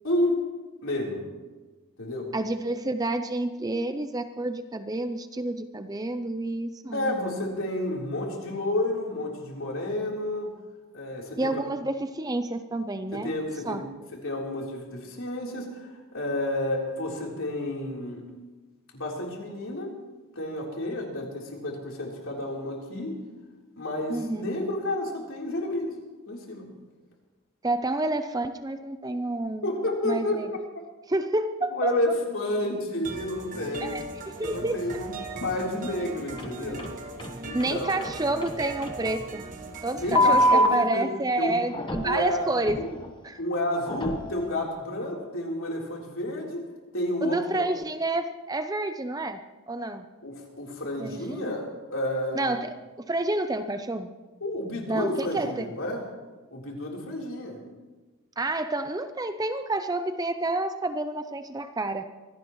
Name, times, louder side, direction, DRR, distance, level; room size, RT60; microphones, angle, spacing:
voice 1, 0.0-0.4 0.8-1.3 2.0-2.3 6.9-10.5 10.9-11.6 13.1-13.8 14.1-18.3 18.9-19.9 20.4-23.2 23.8-25.9 26.3-26.7 29.6-30.4 31.7-34.0 34.4-36.9 37.4-38.0 39.9-41.1 41.4-41.6 42.0-42.9 43.4-46.6 46.9-47.7 50.2-52.6 54.4-56.0 56.5-57.6, left 1 dB, 65° left, -2 dB, 3.8 m, -30 dB
voice 2, 2.3-7.1 11.4-13.3 13.6-13.8 24.1-24.5 27.6-29.7 30.0-30.5 31.1-31.9 33.8-34.8 37.5-39.4 39.8-42.8 43.2-43.4 47.2-50.1 51.0-51.5 52.3-52.7 53.1-54.1 54.9-55.7 58.4-62.0, right 2 dB, 15° right, 9 dB, 0.5 m, -29 dB
sound 1, 33.0-40.4, right 3 dB, 35° right, 1.4 m, -39 dB
sound 2, 36.4-36.5 36.8-36.9 37.2-37.3 37.6-37.7 38.0-38.1 38.4-38.5 38.8-38.9 40.2-40.7 41.7-42.1 42.7-42.8 43.9-44.2, equal, 20° left, 1.1 m, -22 dB
24.0 x 17.0 x 3.1 m, 1.2 s
head